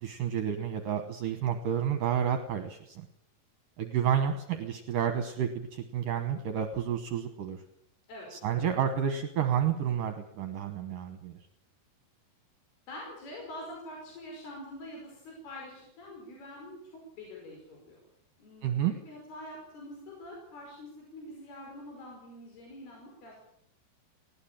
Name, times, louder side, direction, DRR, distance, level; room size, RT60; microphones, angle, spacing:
voice 1, 0.0-3.1 3.8-7.6 8.3-11.4 18.6-18.9, right 9 dB, 65° right, 8 dB, 2.5 m, -30 dB
voice 2, 8.1-8.7 12.9-18.0 18.4-23.4, left 1 dB, 70° left, -1 dB, 7.5 m, -45 dB
19.0 x 18.0 x 8.9 m, 0.75 s
omnidirectional pair, 4.6 m